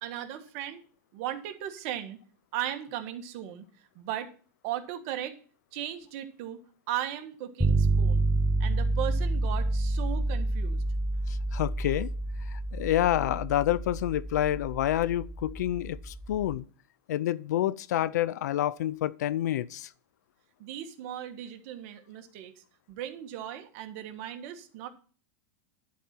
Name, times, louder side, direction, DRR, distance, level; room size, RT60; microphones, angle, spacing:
voice 1, 0.0-0.8 1.1-2.2 2.5-3.6 3.9-4.3 4.6-5.3 5.7-6.6 6.9-8.3 8.6-10.8 20.6-24.9, right 11 dB, 55° right, 1.5 m, -37 dB
sound 1, 7.6-16.6, right 2 dB, ahead, 0.7 m, -29 dB
voice 2, 11.3-12.1 12.5-16.6 17.1-19.9, left 13 dB, 85° left, 0.5 m, -28 dB
11.5 x 4.2 x 7.5 m
supercardioid pair, 135°, 9 cm